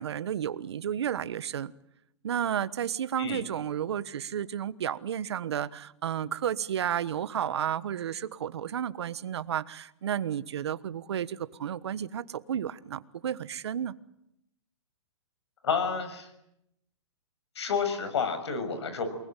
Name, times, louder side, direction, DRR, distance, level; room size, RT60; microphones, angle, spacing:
voice 1, 0.0-1.7 2.2-13.9, right 9 dB, 60° right, 1.3 m, -32 dB
voice 2, 15.6-16.3 17.5-19.1, left 5 dB, 60° left, 6.9 m, -30 dB
28.5 x 20.5 x 9.1 m
hypercardioid pair, 170°, 16 cm